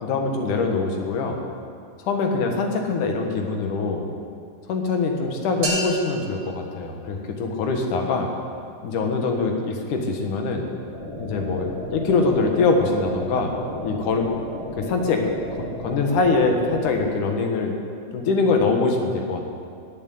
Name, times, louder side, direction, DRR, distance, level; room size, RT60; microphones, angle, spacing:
voice 1, 0.0-1.4 2.0-4.1 4.7-8.3 8.8-10.7 11.2-13.5 13.8-14.3 14.8-15.2 15.6-17.7 18.1-19.5, left 3 dB, 75° left, 3 dB, 3.0 m, -23 dB
sound 1, 5.6-7.6, right 1 dB, 70° right, 4.1 m, -31 dB
sound 2, 10.9-17.0, left 1 dB, 45° left, 4.0 m, -34 dB
15.0 x 7.6 x 10.0 m, 2.3 s
omnidirectional pair, 3.6 m